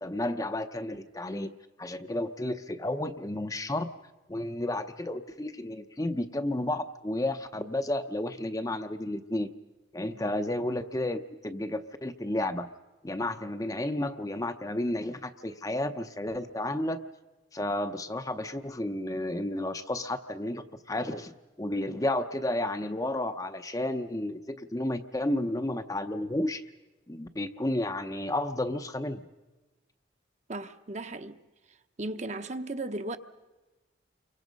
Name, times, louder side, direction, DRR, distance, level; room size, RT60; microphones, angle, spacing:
voice 1, 0.0-3.9 4.3-9.5 9.9-12.7 13.0-17.0 17.5-26.6 27.1-29.2, left 1 dB, 20° left, 0.7 m, -32 dB
voice 2, 30.5-31.4 32.0-33.2, right 2 dB, 35° right, 0.9 m, -36 dB
29.5 x 24.0 x 5.3 m
head